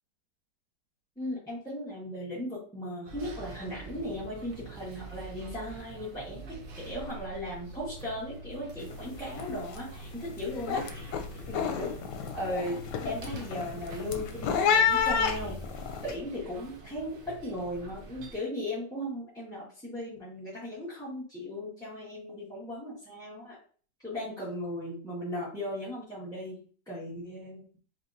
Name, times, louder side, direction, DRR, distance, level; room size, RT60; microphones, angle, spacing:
voice 1, 1.2-11.2 11.5-11.9 12.3-15.6 16.0-23.6 24.0-27.6, left 1 dB, ahead, -9 dB, 1.3 m, -37 dB
sound 1, 3.1-18.4, right 3 dB, 65° right, 0.5 m, -45 dB
sound 2, 8.8-9.1 9.3-9.8 10.2-16.1, left 7 dB, 85° left, 1.3 m, -30 dB
4.5 x 3.4 x 2.6 m, 0.43 s
omnidirectional pair, 1.8 m